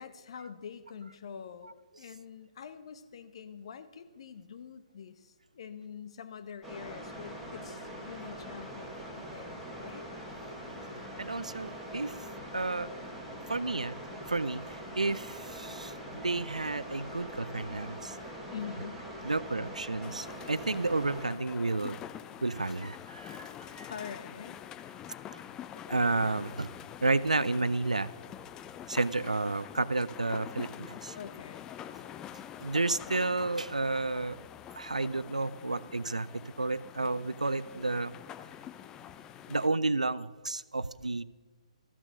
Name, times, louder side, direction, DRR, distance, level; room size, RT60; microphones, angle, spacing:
voice 1, 0.0-10.1 18.5-19.1 23.9-24.6 31.2-31.7, left 7 dB, 50° left, 11 dB, 0.9 m, -45 dB
sound 1, 6.6-21.3, equal, ahead, 2.5 m, -43 dB
voice 2, 11.2-12.2 12.5-12.9 13.5-14.0 14.3-18.2 19.2-22.0 22.4-23.9 25.3-25.4 25.9-26.7 27.0-28.1 28.9-31.2 32.6-34.4 34.7-38.1 39.5-41.2, right 3 dB, 85° right, 18 dB, 0.4 m, -31 dB
sound 2, 20.0-39.7, left 10 dB, 15° left, 0.4 m, -46 dB
13.5 x 6.2 x 6.4 m, 1.3 s
figure-of-eight pair, 130°, 4 cm